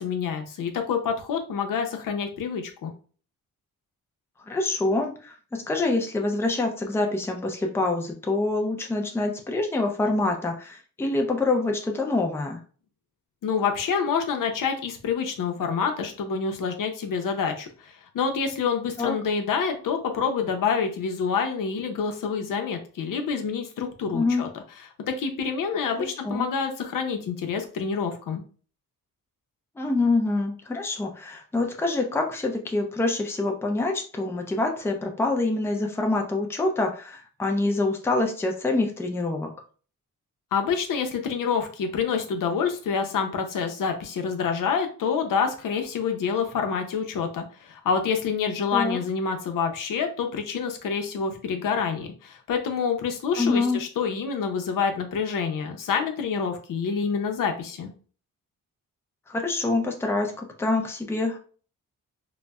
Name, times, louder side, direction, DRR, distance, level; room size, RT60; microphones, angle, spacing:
voice 1, 0.0-2.9 13.4-24.5 25.1-28.4 40.5-57.9, left 6 dB, 70° left, 5 dB, 0.6 m, -27 dB
voice 2, 4.5-12.6 19.0-19.1 24.1-24.5 26.0-26.5 29.8-39.5 48.7-49.0 53.4-53.8 59.3-61.4, left 2 dB, 5° left, 2 dB, 0.5 m, -26 dB
3.9 x 2.0 x 2.3 m, 0.41 s
cardioid pair, 110°, 34 cm